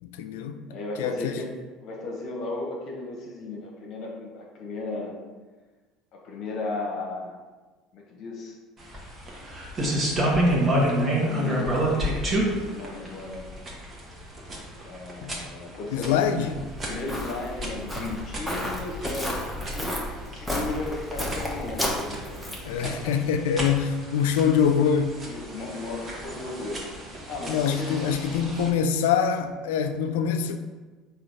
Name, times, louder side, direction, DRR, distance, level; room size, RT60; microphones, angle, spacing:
voice 1, 0.0-0.6 1.0-1.4 15.2-15.4 15.9-16.6 22.6-25.2 27.5-30.6, left 7 dB, 85° left, 0.3 m, -24 dB
voice 2, 0.7-1.4 1.8-5.2 6.1-7.4 7.9-8.5 11.0-13.4 14.8-16.3 16.8-22.5 22.8-23.0 25.3-26.8 27.1-28.0, left 2 dB, 60° left, 0.8 m, -35 dB
sound 1, 8.8-28.7, right 1 dB, 30° right, 1.3 m, -30 dB
Walk footsteps, 16.5-22.8, left 1 dB, ahead, 1.0 m, -32 dB
3.8 x 2.7 x 4.8 m
supercardioid pair, 85°, 0 cm